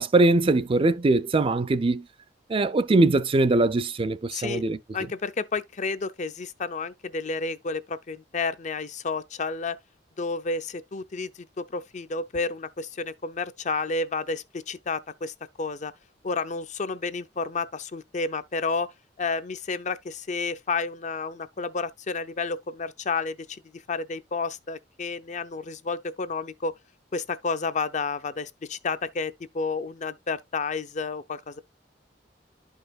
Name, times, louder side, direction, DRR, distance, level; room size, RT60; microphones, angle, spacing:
voice 1, 0.0-2.0 2.5-4.8, right 2 dB, 30° right, 0.4 m, -22 dB
voice 2, 4.3-4.6 4.9-9.8 10.2-11.3 11.6-15.9 16.2-18.9 19.2-23.6 23.9-26.7 27.1-31.6, left 4 dB, 45° left, 0.5 m, -31 dB
11.5 x 5.5 x 2.4 m
head